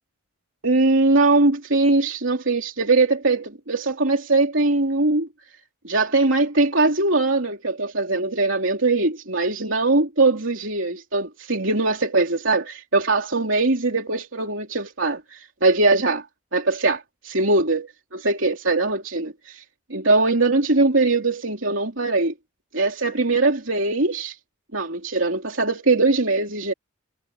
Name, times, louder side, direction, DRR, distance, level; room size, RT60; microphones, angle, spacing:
voice 1, 0.6-5.3 5.8-16.2 16.5-17.0 17.2-19.6 19.9-22.3 22.7-24.3 24.7-26.7, right 3 dB, 70° right, 3.2 m, -21 dB
head